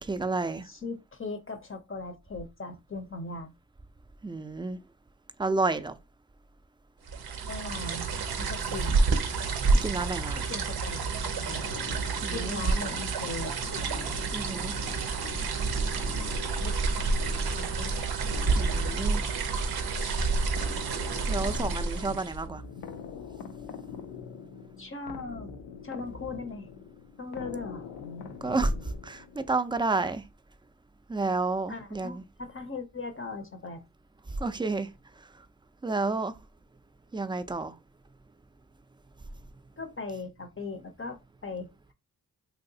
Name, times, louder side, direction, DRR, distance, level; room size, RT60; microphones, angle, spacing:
voice 1, 0.0-0.7 4.2-4.8 5.4-5.9 9.8-10.4 12.2-12.6 14.3-14.7 18.5-19.2 21.3-22.6 28.4-28.7 29.0-30.2 31.1-32.2 34.4-34.9 35.8-36.3 37.1-37.8, right 3 dB, 15° right, 0.4 m, -30 dB
voice 2, 0.6-3.5 7.4-8.0 8.4-9.0 10.4-11.0 11.2-11.6 12.3-13.6 16.6-17.1 17.5-18.0 24.8-25.5 25.8-26.7 27.2-27.9 31.7-33.8 39.8-41.9, left 3 dB, 35° left, 0.6 m, -39 dB
sound 1, 7.1-22.5, right 4 dB, 80° right, 0.6 m, -29 dB
sound 2, 11.5-29.6, left 6 dB, 90° left, 0.5 m, -44 dB
3.1 x 2.8 x 2.7 m
cardioid pair, 40°, 37 cm